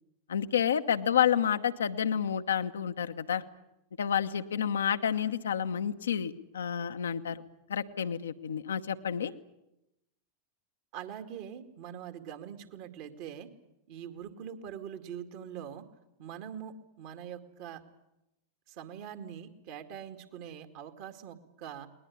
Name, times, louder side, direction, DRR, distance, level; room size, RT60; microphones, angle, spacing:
voice 1, 0.3-3.4 4.0-7.4 7.7-9.3, left 8 dB, 65° left, 9 dB, 1.0 m, -29 dB
voice 2, 10.9-13.5 13.9-15.9 16.2-17.8 18.7-21.9, right 9 dB, 45° right, 8 dB, 2.2 m, -43 dB
21.0 x 19.5 x 9.7 m, 0.89 s
figure-of-eight pair, 90°, 0 cm